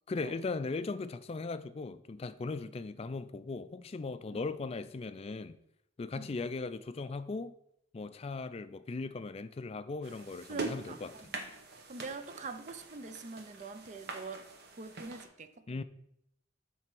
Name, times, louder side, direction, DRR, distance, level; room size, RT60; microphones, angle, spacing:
voice 1, 0.1-5.6 6.0-7.5 7.9-11.1 15.7-15.8, left 3 dB, 35° left, 0.4 m, -38 dB
sound 1, 10.0-15.3, right 3 dB, 60° right, 1.0 m, -44 dB
voice 2, 10.5-11.5 11.9-15.8, right 3 dB, 40° right, 0.5 m, -44 dB
7.5 x 3.5 x 6.0 m
head